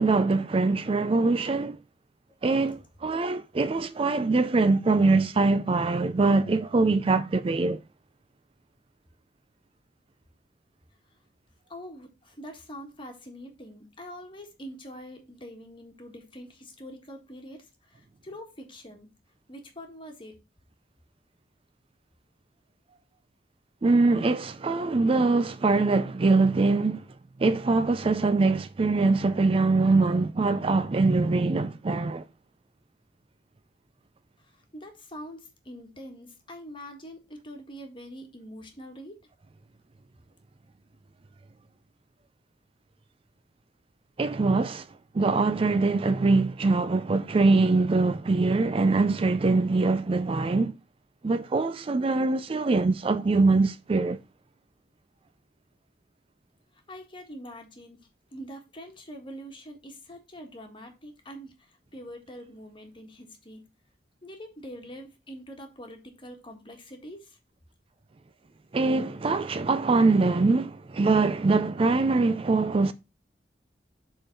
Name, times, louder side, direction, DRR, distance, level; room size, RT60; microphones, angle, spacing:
voice 1, 0.0-1.8 2.4-7.8 23.8-27.1 27.4-32.2 44.2-44.9 45.1-50.7 51.2-54.2 68.7-72.9, right 3 dB, 30° right, 0.4 m, -23 dB
voice 2, 11.7-19.1 19.5-20.4 34.4-39.2 56.9-58.0 58.3-63.6 64.2-67.4, equal, 30° left, 1.7 m, -44 dB
7.1 x 3.8 x 5.3 m
head